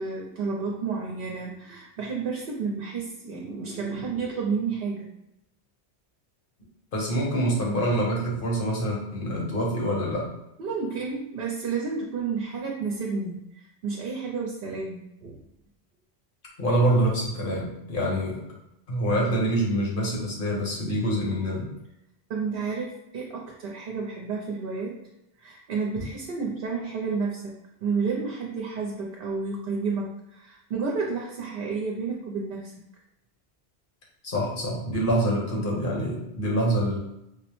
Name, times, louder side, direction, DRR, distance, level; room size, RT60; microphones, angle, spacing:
voice 1, 0.0-5.1 8.2-8.3 10.6-15.4 22.3-25.0 25.4-27.5 27.8-32.7, right 4 dB, 65° right, -2 dB, 0.8 m, -31 dB
voice 2, 6.9-10.3 16.6-18.4 18.9-21.7 26.0-26.1 34.2-37.0, right 1 dB, 55° left, -3 dB, 1.1 m, -26 dB
4.8 x 2.0 x 3.0 m, 0.85 s
omnidirectional pair, 1.1 m